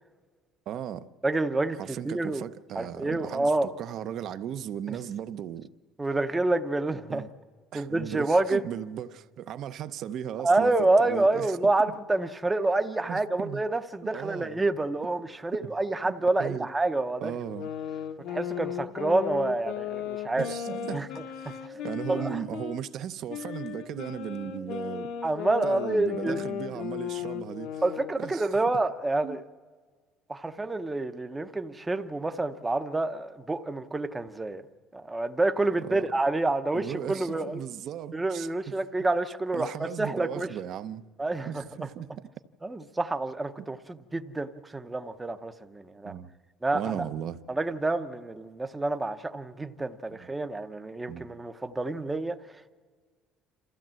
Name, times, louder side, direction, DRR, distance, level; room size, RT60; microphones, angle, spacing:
voice 1, 0.7-1.1 1.8-5.7 7.1-7.3 7.7-11.9 13.1-13.6 14.1-14.6 15.6-15.7 16.0-16.7 17.2-17.7 20.4-25.1 25.6-27.8 28.2-28.5 29.2-29.4 35.8-36.1 36.7-38.7 39.5-41.1 41.5-42.1 43.6-43.7 46.0-46.3 46.7-47.4 50.1-50.3 51.1-51.3, right 10 dB, 45° right, 0.6 m, -37 dB
voice 2, 1.2-2.5 2.8-3.7 4.9-5.0 6.0-7.3 7.7-8.6 10.4-17.3 18.3-20.5 20.9-21.1 21.4-21.5 22.1-22.4 25.2-26.4 27.8-29.4 30.3-34.6 34.9-37.6 38.1-40.5 41.2-41.9 42.6-46.1 46.6-47.0 47.5-52.4, right 2 dB, 10° right, 0.7 m, -28 dB
sound 1, 17.4-22.8 23.3-28.2, left 9 dB, 65° left, 1.1 m, -36 dB
27.5 x 15.0 x 7.6 m
cardioid pair, 175°, 0 cm